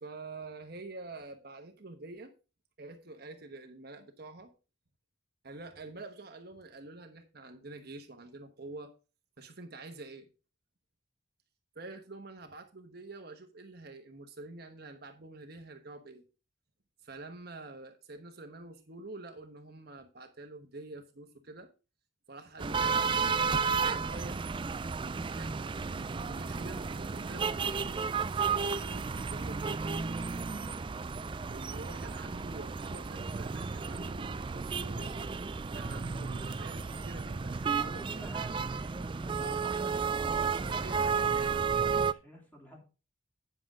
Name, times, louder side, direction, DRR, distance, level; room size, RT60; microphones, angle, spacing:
voice 1, 0.0-2.3 2.8-4.5 5.4-8.9 9.4-10.3 11.7-16.2 17.0-21.7 22.3-24.4 25.2-29.7 31.5-35.2 35.7-38.4 39.4-41.7, right 2 dB, 50° right, 1.2 m, -47 dB
sound 1, 22.6-42.1, right 5 dB, 25° right, 0.3 m, -33 dB
voice 2, 37.7-40.1 40.3-42.8, right 1 dB, 10° left, 2.9 m, -49 dB
9.5 x 7.5 x 3.7 m
head